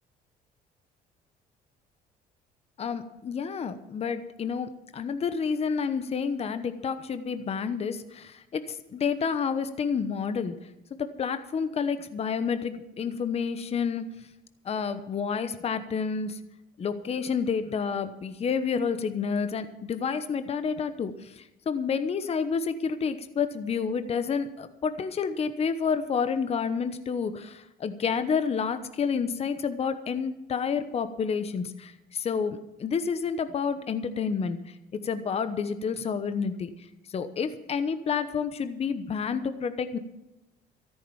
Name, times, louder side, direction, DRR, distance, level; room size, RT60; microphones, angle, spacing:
voice 1, 2.8-10.5 11.0-14.1 14.6-16.4 16.8-36.7 37.1-40.0, left 6 dB, 35° left, 10 dB, 1.0 m, -29 dB
14.0 x 9.4 x 7.1 m, 0.92 s
cardioid pair, 110°, 17 cm